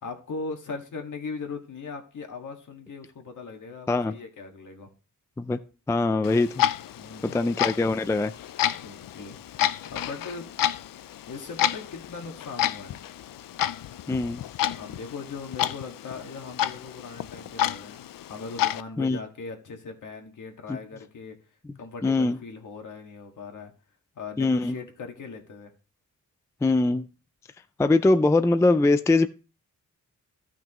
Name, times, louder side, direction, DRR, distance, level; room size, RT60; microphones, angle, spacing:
voice 1, 0.0-4.9 7.0-7.4 8.8-10.5 11.3-13.0 14.7-21.4 21.8-23.7 24.2-25.7, left 4 dB, 65° left, 3 dB, 1.8 m, -39 dB
voice 2, 5.9-6.6 7.2-8.3 14.1-14.4 19.0-19.2 20.7-20.8 22.0-22.4 24.4-24.8 26.6-27.1 27.8-29.3, left 2 dB, 10° left, 11 dB, 0.3 m, -22 dB
Clock, 6.2-18.8, left 12 dB, 85° left, 0.5 m, -30 dB
14.5 x 6.0 x 3.0 m, 0.35 s
wide cardioid pair, 160°, 33 cm